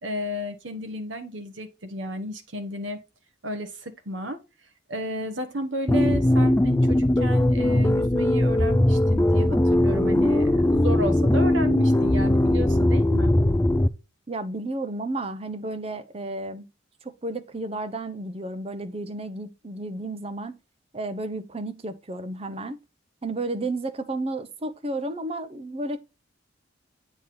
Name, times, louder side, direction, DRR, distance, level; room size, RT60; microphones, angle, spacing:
voice 1, 0.0-3.0 3.4-4.4 4.9-13.3, equal, 75° right, 1.3 m, -33 dB
sound 1, 5.9-13.9, left 1 dB, 10° left, 0.3 m, -20 dB
voice 2, 14.3-16.7 17.0-20.6 20.9-22.8 23.2-26.0, right 2 dB, 30° right, 0.6 m, -32 dB
8.1 x 3.7 x 4.2 m
head